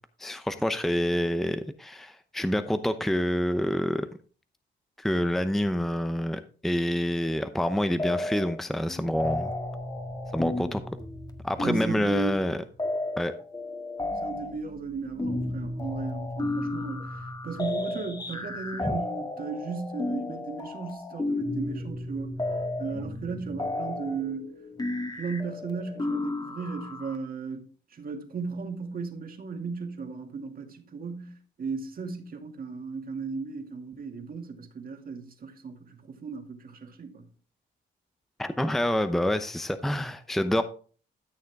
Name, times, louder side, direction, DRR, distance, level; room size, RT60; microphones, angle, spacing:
voice 1, 0.2-4.1 5.0-9.5 10.3-10.8 11.4-12.6 13.2-13.3 18.8-19.0 38.4-40.6, equal, ahead, 0.7 m, -27 dB
sound 1, 8.0-8.6 8.9-27.2, left 2 dB, 20° left, 1.7 m, -33 dB
voice 2, 11.6-12.4 14.2-22.4 22.8-24.5 25.1-37.3, right 4 dB, 45° right, 2.2 m, -36 dB
13.5 x 6.5 x 3.5 m
cardioid pair, 90°, 20 cm